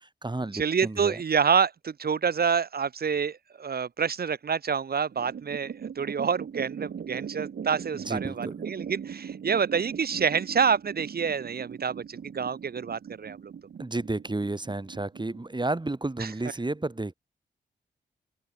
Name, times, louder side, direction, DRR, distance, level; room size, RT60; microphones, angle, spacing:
voice 1, 0.0-1.2 7.9-8.7 13.8-17.1, right 2 dB, 25° right, 3.3 m, -32 dB
voice 2, 0.5-13.5 16.2-16.3, right 6 dB, 55° right, 1.1 m, -27 dB
sound 1, 5.1-15.9, right 7 dB, 75° right, 3.6 m, -40 dB
open air
cardioid pair, 55°, 18 cm